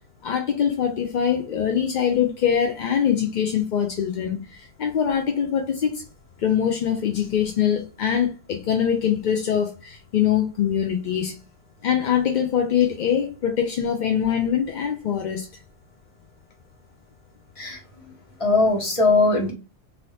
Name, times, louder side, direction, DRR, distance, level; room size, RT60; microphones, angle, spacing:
voice 1, 0.2-6.0 6.4-11.4 11.8-15.5, left 8 dB, 60° left, 0.5 m, -23 dB
voice 2, 18.4-19.5, left 3 dB, 30° left, 1.0 m, -19 dB
2.8 x 2.7 x 3.1 m
omnidirectional pair, 1.2 m